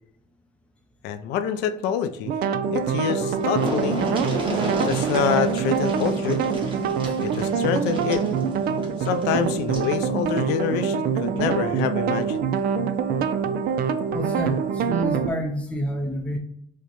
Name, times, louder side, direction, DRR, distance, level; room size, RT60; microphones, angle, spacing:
voice 1, 1.0-2.3 2.7-4.0 4.8-6.4 7.2-8.2 9.0-12.5, left 8 dB, 90° left, 11 dB, 0.4 m, -26 dB
sound 1, 2.3-15.3, right 7 dB, 65° right, 0.4 m, -25 dB
sound 2, 2.8-2.9 3.1-9.9 11.2-11.4 11.8-11.9, equal, 30° right, 1.2 m, -33 dB
sound 3, 3.9-11.8, equal, 50° right, 1.1 m, -39 dB
voice 2, 14.1-16.4, right 1 dB, 5° left, 2 dB, 0.5 m, -28 dB
4.7 x 2.1 x 2.9 m, 0.74 s
cardioid pair, 110°, 17 cm